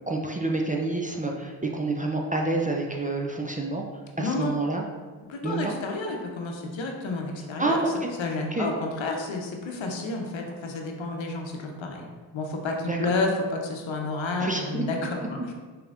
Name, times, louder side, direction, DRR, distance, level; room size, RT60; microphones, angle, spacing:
voice 1, 0.1-3.8 4.2-4.8 5.4-5.7 7.6-8.1 8.5-8.7 12.9-13.0 14.4-14.8, right 2 dB, 15° right, 0 dB, 0.4 m, -28 dB
voice 2, 4.2-4.6 5.3-7.8 8.2-12.1 12.3-15.4, left 3 dB, 70° left, 1 dB, 0.8 m, -30 dB
5.1 x 3.0 x 2.5 m, 1.4 s
cardioid pair, 40°, 48 cm